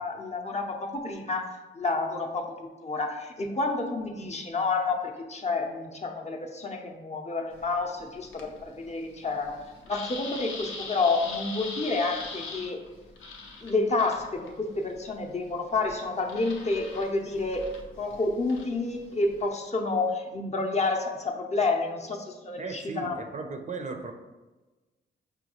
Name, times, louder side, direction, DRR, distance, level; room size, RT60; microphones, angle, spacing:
voice 1, 0.0-12.8 13.6-17.7 18.0-23.2, left 3 dB, 35° left, 1 dB, 0.5 m, -29 dB
sound 1, 7.5-19.5, left 3 dB, 90° left, 0.5 m, -43 dB
voice 2, 22.6-24.1, right 4 dB, 40° right, 5 dB, 0.4 m, -36 dB
5.0 x 2.3 x 2.9 m, 1.2 s
cardioid pair, 55°, 20 cm